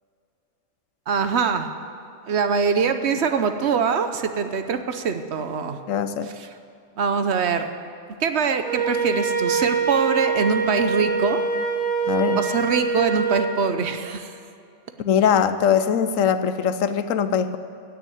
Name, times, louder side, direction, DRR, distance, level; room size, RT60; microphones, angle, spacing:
voice 1, 1.1-1.7 2.3-5.8 6.2-6.5 7.0-7.7 8.2-11.4 12.4-14.4, right 6 dB, 60° right, 8 dB, 1.0 m, -23 dB
voice 2, 5.9-6.3 12.1-12.4 15.0-17.6, left 8 dB, 90° left, 11 dB, 1.1 m, -21 dB
Wind instrument woodwind instrument, 8.6-13.5, right 5 dB, 25° right, 3.8 m, -24 dB
16.5 x 6.5 x 9.2 m, 2.6 s
omnidirectional pair, 1.3 m